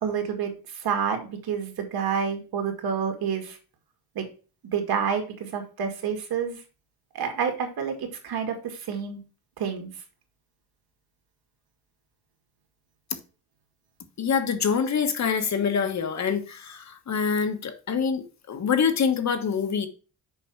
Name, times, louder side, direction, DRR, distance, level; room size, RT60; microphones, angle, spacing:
voice 1, 0.0-3.6 4.2-4.3 4.7-6.6 7.1-9.2 9.6-9.9, right 7 dB, 70° right, 2.2 m, -29 dB
voice 2, 14.2-19.9, left 6 dB, 45° left, 1.3 m, -25 dB
7.0 x 5.0 x 4.6 m
cardioid pair, 130°, 38 cm